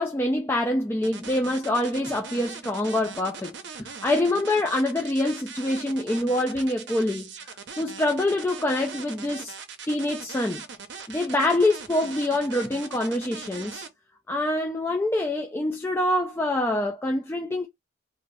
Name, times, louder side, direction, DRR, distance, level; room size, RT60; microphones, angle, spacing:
voice 1, 0.0-9.5 9.9-10.6 11.1-13.9 14.3-17.7, left 1 dB, 10° left, 0.3 m, -25 dB
sound 1, 1.0-13.9, right 6 dB, 65° right, 0.6 m, -40 dB
2.7 x 2.4 x 3.2 m
head